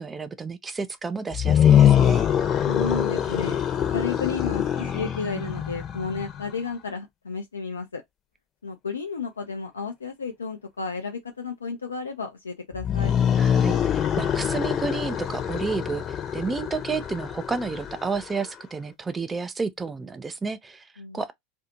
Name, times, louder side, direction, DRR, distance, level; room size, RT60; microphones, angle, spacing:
voice 1, 0.0-2.3 13.4-20.9 21.1-21.3, right 4 dB, 20° right, 0.5 m, -31 dB
sound 1, 1.3-6.5 12.7-18.4, left 9 dB, 35° left, 0.8 m, -23 dB
voice 2, 2.7-3.6 3.9-8.0 8.6-13.1 21.0-21.2, left 4 dB, 80° left, 0.5 m, -32 dB
2.5 x 2.4 x 2.8 m
figure-of-eight pair, 80°, 0 cm